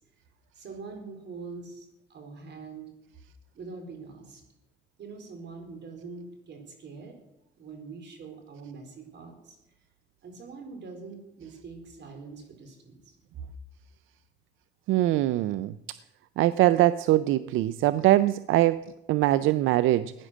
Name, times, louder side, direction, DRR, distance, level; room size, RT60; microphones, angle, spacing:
voice 1, 0.5-2.9 3.5-4.4 5.0-7.2 7.6-9.6 10.2-13.1, right 4 dB, 60° right, 4 dB, 4.3 m, -43 dB
voice 2, 14.9-15.7 16.4-20.1, right 15 dB, 90° right, 15 dB, 0.5 m, -22 dB
16.0 x 10.0 x 6.4 m, 0.88 s
cardioid pair, 90°, 20 cm